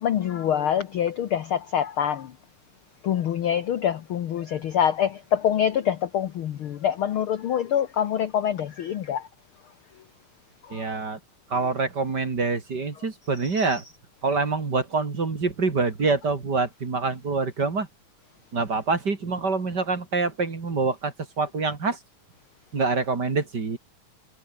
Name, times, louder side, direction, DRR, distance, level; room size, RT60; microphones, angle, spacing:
voice 1, 0.0-2.3 3.0-9.3 10.7-11.0 13.6-13.7, left 9 dB, 65° left, 1.3 m, -25 dB
voice 2, 10.7-11.2 11.5-13.8 14.2-17.9 18.5-22.0 22.7-23.8, right 4 dB, 35° right, 2.9 m, -26 dB
omnidirectional pair, 3.7 m